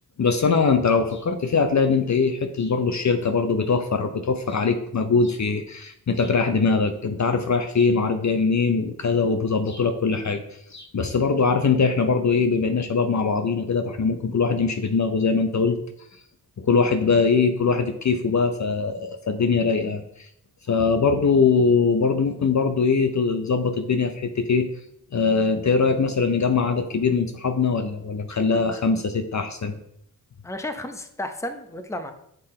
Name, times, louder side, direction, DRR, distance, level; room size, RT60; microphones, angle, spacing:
voice 1, 0.2-10.4 10.7-15.8 16.6-20.0 20.7-24.7 25.1-29.8, left 4 dB, 45° left, 7 dB, 0.7 m, -22 dB
voice 2, 30.4-32.1, left 1 dB, 5° left, 7 dB, 0.8 m, -32 dB
6.6 x 3.8 x 4.3 m, 0.74 s
cardioid pair, 40°, 41 cm